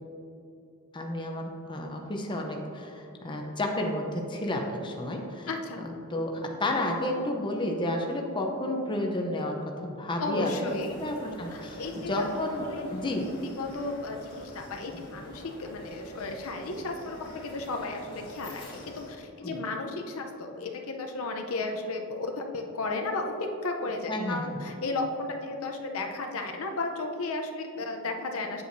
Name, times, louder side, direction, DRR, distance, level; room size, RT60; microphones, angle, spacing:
voice 1, 0.9-5.5 5.8-10.7 11.0-13.3 19.4-19.6 24.1-24.6, left 1 dB, 20° left, 1 dB, 0.7 m, -31 dB
voice 2, 5.5-5.8 10.2-10.9 11.3-12.3 12.7-12.8 13.6-28.6, left 3 dB, 70° left, 3 dB, 0.7 m, -34 dB
sound 1, 10.6-19.1, left 1 dB, 50° left, 1.6 m, -45 dB
8.4 x 7.9 x 2.7 m, 2.6 s
head